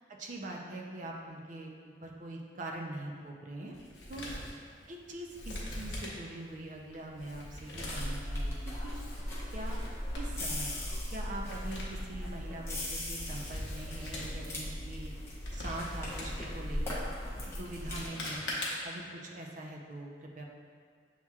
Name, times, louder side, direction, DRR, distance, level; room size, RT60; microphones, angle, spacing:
voice 1, 0.0-3.8 4.1-4.4 4.9-8.5 8.8-9.0 9.5-9.8 10.2-10.8 11.1-15.2 15.5-17.1 17.5-18.5 18.8-20.4, right 2 dB, 40° right, 0 dB, 0.5 m, -43 dB
Male speech man speaking, 3.7-19.1, left 1 dB, 75° left, 0.9 m, -44 dB
sound 1, 7.8-18.1, left 1 dB, 15° left, 0.7 m, -38 dB
7.2 x 2.9 x 2.3 m, 2.1 s
head